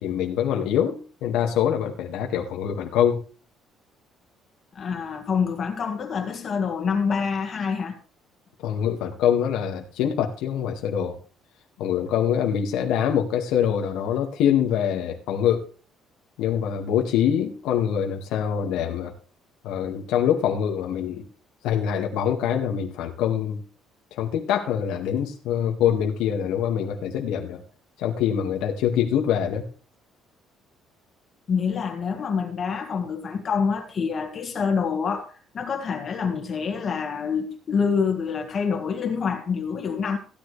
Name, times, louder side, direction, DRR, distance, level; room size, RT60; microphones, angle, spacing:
voice 1, 0.0-3.2 8.6-11.2 11.8-15.7 16.4-19.1 19.6-21.3 21.6-23.6 24.1-27.6 28.0-29.6, left 9 dB, 85° left, 1.9 m, -24 dB
voice 2, 4.7-7.9 31.5-40.2, left 6 dB, 30° left, 1.7 m, -26 dB
16.0 x 10.5 x 3.3 m
cardioid pair, 180°, 0 cm